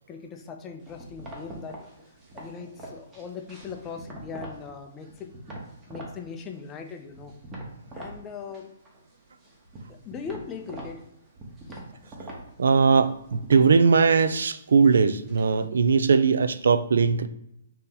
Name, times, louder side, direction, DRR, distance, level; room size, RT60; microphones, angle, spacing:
voice 1, 0.1-1.8 2.3-5.3 5.9-7.3 7.9-8.7 9.9-11.0 11.7-11.8, left 6 dB, 15° left, 5 dB, 0.4 m, -39 dB
sound 1, 0.9-4.7 5.0-6.2 6.5-8.2 8.5-9.1 9.4-15.6, right 1 dB, 15° right, 0.8 m, -43 dB
voice 2, 12.6-17.3, right 5 dB, 85° right, 13 dB, 0.3 m, -20 dB
3.9 x 2.8 x 3.7 m, 0.82 s
hypercardioid pair, 165°, 0 cm